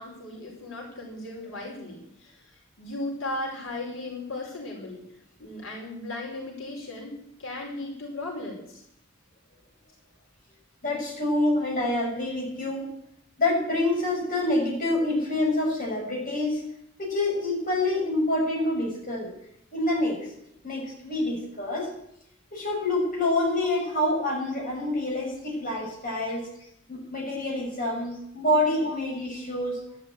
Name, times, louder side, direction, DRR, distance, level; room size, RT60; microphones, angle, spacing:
voice 1, 0.0-2.4 2.8-5.0 5.4-8.8 28.8-29.0 29.8-30.0, left 2 dB, 85° left, -2 dB, 5.0 m, -36 dB
voice 2, 10.8-12.9 13.4-16.6 17.0-19.3 19.7-20.2 20.6-21.9 22.5-26.5 26.9-29.8, left 1 dB, 45° left, -2 dB, 6.3 m, -27 dB
12.5 x 12.0 x 8.5 m, 0.76 s
head